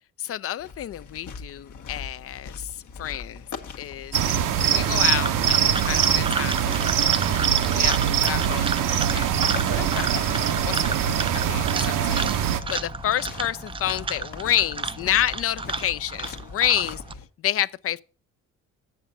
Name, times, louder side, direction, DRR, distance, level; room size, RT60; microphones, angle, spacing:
voice 1, 0.2-3.4 3.8-4.2 4.6-7.2 7.6-10.4 10.6-11.7 12.0-12.3 12.7-17.0 17.4-18.0, left 11 dB, 45° left, 0.4 m, -29 dB
sound 1, 0.6-17.3, left 4 dB, 60° left, 1.1 m, -40 dB
sound 2, 4.1-12.6, right 9 dB, 65° right, 0.8 m, -23 dB
sound 3, 4.7-17.1, right 4 dB, 15° right, 0.4 m, -33 dB
7.0 x 5.6 x 5.4 m
supercardioid pair, 60°, 34 cm